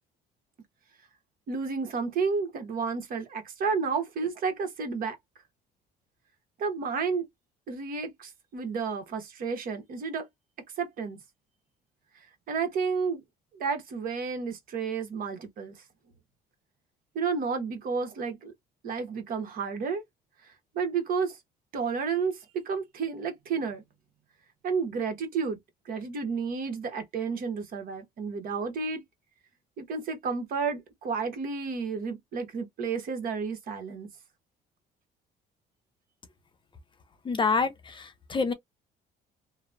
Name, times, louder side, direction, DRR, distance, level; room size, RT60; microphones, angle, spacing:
voice 1, 1.5-5.2 6.6-7.3 7.7-10.3 10.8-11.2 12.5-13.2 13.5-15.7 17.1-18.5 18.8-20.0 20.7-21.4 21.7-23.8 24.6-25.6 25.8-29.0 29.8-34.1, right 5 dB, 60° right, 1.1 m, -31 dB
voice 2, 37.3-38.5, left 4 dB, 30° left, 0.6 m, -27 dB
3.0 x 2.0 x 2.4 m
cardioid pair, 110°, 17 cm